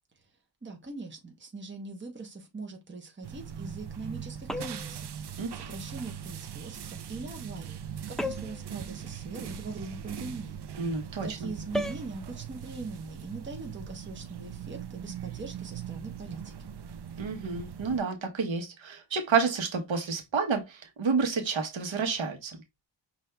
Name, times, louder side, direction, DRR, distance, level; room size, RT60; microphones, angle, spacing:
voice 1, 0.6-7.8 8.1-10.6 11.2-16.7, right 3 dB, 25° right, 1.0 m, -41 dB
sound 1, 3.2-18.0, right 8 dB, 60° right, 0.6 m, -41 dB
sound 2, 4.5-5.0 8.2-8.7 11.7-12.1, left 1 dB, ahead, 0.3 m, -33 dB
voice 2, 10.8-11.5 17.2-22.6, right 5 dB, 75° right, 1.2 m, -29 dB
5.6 x 2.6 x 3.2 m
wide cardioid pair, 150°, 46 cm